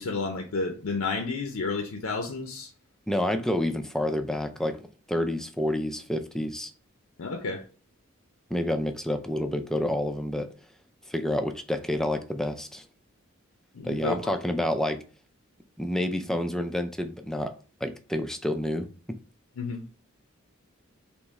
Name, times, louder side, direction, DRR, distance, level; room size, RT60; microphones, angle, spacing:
voice 1, 0.0-2.7 7.2-7.6 13.7-14.2 19.6-19.8, left 3 dB, 85° left, 0.6 m, -31 dB
voice 2, 3.1-6.7 8.5-10.5 11.1-12.8 13.8-15.0 15.8-17.5 17.8-18.9, left 1 dB, ahead, 0.4 m, -29 dB
3.5 x 3.0 x 4.1 m
head